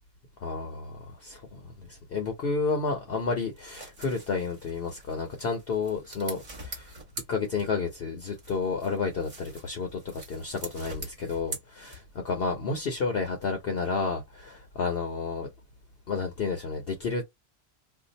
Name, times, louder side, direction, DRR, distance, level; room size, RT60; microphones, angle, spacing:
voice 1, 0.4-6.9 7.3-11.9 12.2-15.5 16.1-17.2, left 4 dB, 55° left, 0.9 m, -31 dB
sound 1, 3.4-8.0 8.3-12.3, right 2 dB, 35° right, 1.3 m, -44 dB
2.7 x 2.5 x 3.9 m
omnidirectional pair, 1.3 m